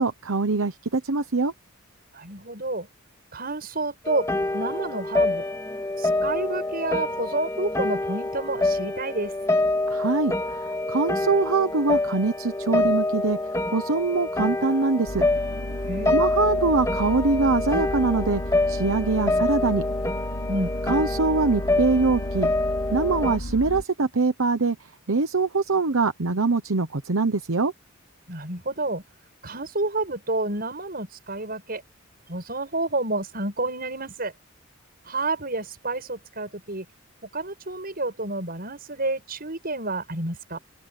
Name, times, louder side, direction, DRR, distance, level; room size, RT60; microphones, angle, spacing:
voice 1, 0.0-1.5 9.9-15.2 16.1-18.4 18.7-19.8 20.9-22.5 22.9-27.7, right 3 dB, 75° right, 1.0 m, -23 dB
voice 2, 2.1-2.9 3.3-5.4 6.0-9.3 15.9-16.2 20.5-20.7 28.3-29.0 29.4-31.8 32.3-34.3 35.0-36.9 37.2-40.6, right 2 dB, 45° right, 7.3 m, -29 dB
sound 1, 4.1-23.4, left 2 dB, 15° left, 4.0 m, -26 dB
sound 2, 15.1-23.8, left 1 dB, 90° left, 2.9 m, -33 dB
open air
head